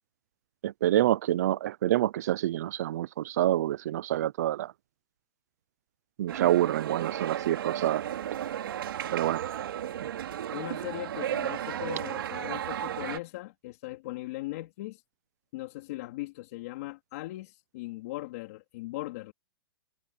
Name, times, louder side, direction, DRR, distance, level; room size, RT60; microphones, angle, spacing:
voice 1, 0.6-4.7 6.2-8.0 9.1-9.4, right 13 dB, 40° right, 0.6 m, -27 dB
sound 1, 6.3-13.2, right 10 dB, 65° right, 3.9 m, -34 dB
voice 2, 10.5-15.0 15.5-19.3, left 18 dB, 35° left, 3.0 m, -39 dB
hypercardioid pair, 175°, 13 cm